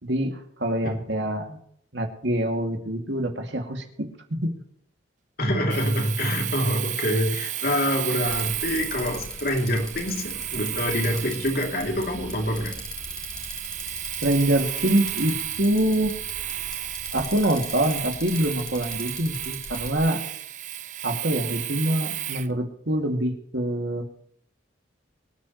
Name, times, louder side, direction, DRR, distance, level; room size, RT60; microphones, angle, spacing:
voice 1, 0.0-1.6 1.9-4.5 14.2-16.1 17.1-20.2 21.0-24.0, right 1 dB, 70° right, 3 dB, 2.6 m, -25 dB
voice 2, 5.4-12.7, equal, 55° left, 2 dB, 3.0 m, -26 dB
Domestic sounds home sounds, 5.7-22.5, right 12 dB, 40° right, 0.7 m, -33 dB
Bicycle, 8.3-20.0, left 1 dB, 5° left, 2.8 m, -40 dB
24.5 x 9.4 x 3.2 m, 0.66 s
head